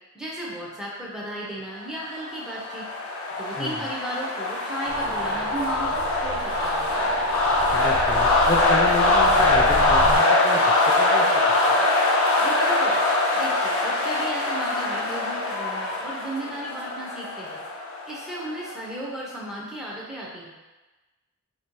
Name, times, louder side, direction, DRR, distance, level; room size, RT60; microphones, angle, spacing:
voice 1, 0.1-2.9 3.4-6.9 12.4-13.0 13.3-17.6 18.1-20.6, right 1 dB, 5° right, -6 dB, 0.7 m, -35 dB
sound 1, 2.1-18.8, left 2 dB, 65° left, 0.7 m, -23 dB
sound 2, 4.9-10.2, equal, 40° right, 0.9 m, -30 dB
voice 2, 7.7-10.6 11.0-11.3 11.7-11.8, left 2 dB, 20° left, -5 dB, 0.3 m, -30 dB
3.0 x 2.8 x 4.5 m, 1.2 s
head